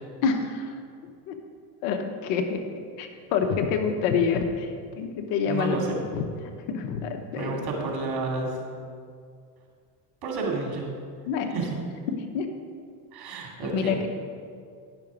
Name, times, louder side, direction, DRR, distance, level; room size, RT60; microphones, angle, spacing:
voice 1, 0.2-0.7 1.3-1.4 1.8-2.6 3.0-6.0 6.7-7.6 11.2-11.6 12.3-12.5 13.6-14.1, left 5 dB, 70° left, 6 dB, 1.1 m, -27 dB
sound 1, 2.8-2.9 3.4-4.5 4.8-5.0 5.3-5.4 5.9-6.4 6.8-7.1 7.6-7.7, left 7 dB, 90° left, 0.8 m, -33 dB
voice 2, 5.4-5.9 7.4-8.6 10.2-10.9 11.5-11.8 13.1-14.0, right 3 dB, 55° right, 0 dB, 2.5 m, -30 dB
10.5 x 6.0 x 5.1 m, 2.2 s
supercardioid pair, 95°, 46 cm